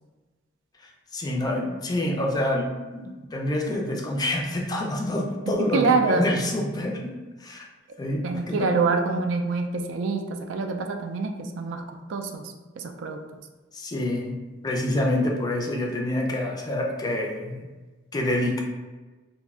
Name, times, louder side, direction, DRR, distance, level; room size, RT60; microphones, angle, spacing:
voice 1, 1.1-7.1 7.4-7.7 8.0-8.8 13.7-14.3 14.6-17.6 18.1-18.6, left 1 dB, 20° left, 1 dB, 0.3 m, -27 dB
voice 2, 5.7-6.3 8.2-13.2, right 4 dB, 70° right, 5 dB, 0.3 m, -26 dB
2.5 x 2.1 x 3.5 m, 1.2 s
head